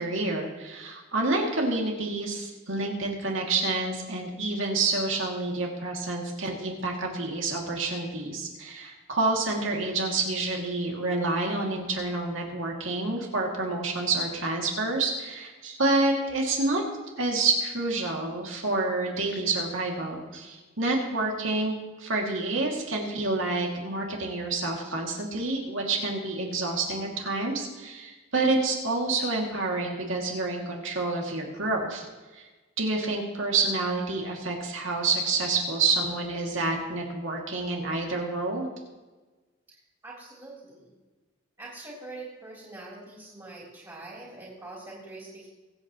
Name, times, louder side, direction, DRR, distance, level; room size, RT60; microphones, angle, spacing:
voice 1, 0.0-16.8 17.2-32.1 32.3-32.5 32.8-38.7, right 3 dB, 75° right, 0 dB, 2.5 m, -28 dB
voice 2, 40.0-40.9 41.6-45.5, right 2 dB, 20° right, -6 dB, 3.4 m, -44 dB
23.5 x 8.5 x 3.1 m, 1.2 s
head